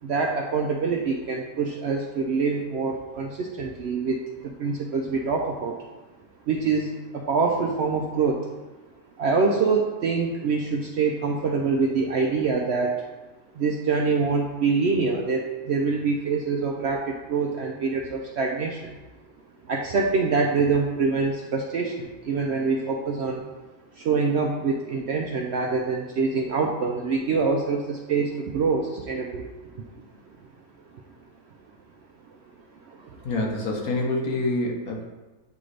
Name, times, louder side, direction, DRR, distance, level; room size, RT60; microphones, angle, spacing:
voice 1, 0.0-5.8 6.5-8.5 9.2-13.0 13.5-18.9 19.7-23.5 23.9-29.4 29.7-29.8 30.9-31.0 32.8-33.3, right 4 dB, 70° right, 1 dB, 0.6 m, -25 dB
voice 2, 33.2-35.0, left 2 dB, 70° left, 0 dB, 1.4 m, -26 dB
8.3 x 3.8 x 3.2 m, 1.2 s
omnidirectional pair, 1.6 m